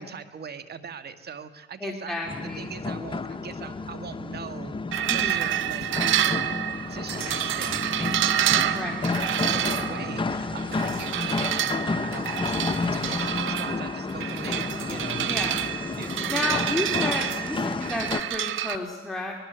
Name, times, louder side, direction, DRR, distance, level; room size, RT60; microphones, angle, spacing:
voice 1, 0.0-4.7 5.1-11.7 12.0-12.3 12.6-15.7 16.0-16.7, right 6 dB, 55° right, 11 dB, 1.8 m, -41 dB
voice 2, 1.8-2.7 5.1-5.4 8.7-9.0 10.8-11.0 15.2-15.6 16.3-19.4, left 2 dB, ahead, -1 dB, 3.3 m, -31 dB
sound 1, 2.2-18.2, left 3 dB, 25° left, 1.1 m, -31 dB
sound 2, 4.9-18.8, right 12 dB, 80° right, 0.9 m, -28 dB
24.5 x 20.5 x 8.1 m, 1.2 s
cardioid pair, 90°, 20 cm